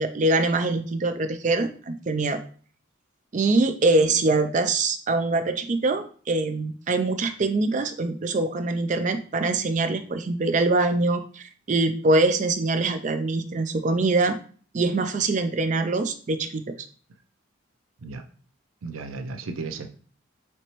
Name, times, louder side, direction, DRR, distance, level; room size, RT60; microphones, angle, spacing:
voice 1, 0.0-2.4 3.3-14.4 14.7-16.8, right 2 dB, 40° right, 8 dB, 0.4 m, -24 dB
voice 2, 18.8-19.9, right 4 dB, 90° right, 7 dB, 0.5 m, -35 dB
4.4 x 3.0 x 2.9 m, 0.43 s
head